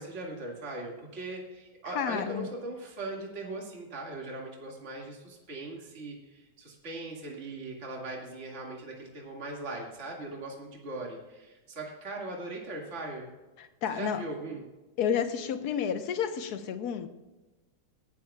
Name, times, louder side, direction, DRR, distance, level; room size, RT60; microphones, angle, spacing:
voice 1, 0.0-13.3 13.9-14.6, right 2 dB, 40° right, -1 dB, 2.3 m, -39 dB
voice 2, 1.9-2.5 13.6-14.2 15.0-17.1, left 8 dB, 60° left, 8 dB, 1.4 m, -31 dB
19.0 x 11.5 x 2.3 m, 1.1 s
omnidirectional pair, 2.0 m